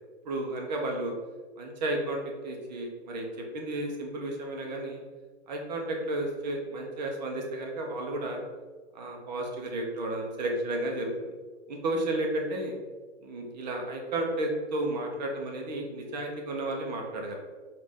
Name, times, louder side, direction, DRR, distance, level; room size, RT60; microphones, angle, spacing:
voice 1, 0.2-1.1 1.6-3.3 3.5-5.0 5.5-8.4 8.9-11.1 11.7-12.7 13.2-17.4, right 1 dB, 35° right, 1 dB, 0.6 m, -32 dB
5.2 x 2.5 x 3.4 m, 1.3 s
hypercardioid pair, 165°, 36 cm